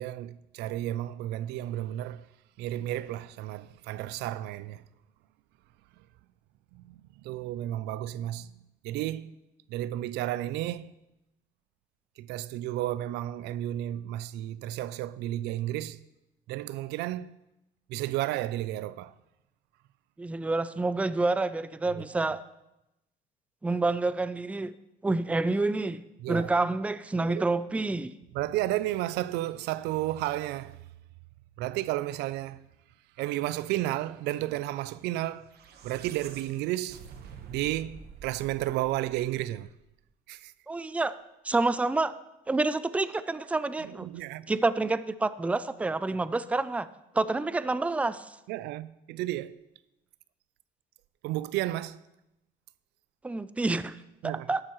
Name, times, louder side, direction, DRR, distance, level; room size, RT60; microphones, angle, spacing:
voice 1, 0.0-2.3 2.6-4.8 6.7-8.5 8.8-9.4 9.7-10.9 12.2-16.0 16.5-17.3 17.9-19.1 21.9-22.3 26.2-26.5 27.1-27.4 28.3-30.8 31.6-32.6 33.2-35.5 35.8-37.1 37.5-39.7 40.3-40.5 43.8-44.5 48.5-49.6 51.2-52.0 54.2-54.5, right 14 dB, 85° right, 0.4 m, -32 dB
voice 2, 20.2-22.4 23.6-24.7 25.0-26.0 26.3-28.1 40.7-41.2 41.4-42.1 42.5-44.1 44.5-46.9 47.1-48.3 53.2-54.0 54.2-54.6, right 3 dB, 10° right, 0.4 m, -28 dB
sound 1, 35.3-39.8, right 6 dB, 70° right, 1.2 m, -48 dB
13.5 x 11.5 x 3.1 m
cardioid pair, 110°, 17 cm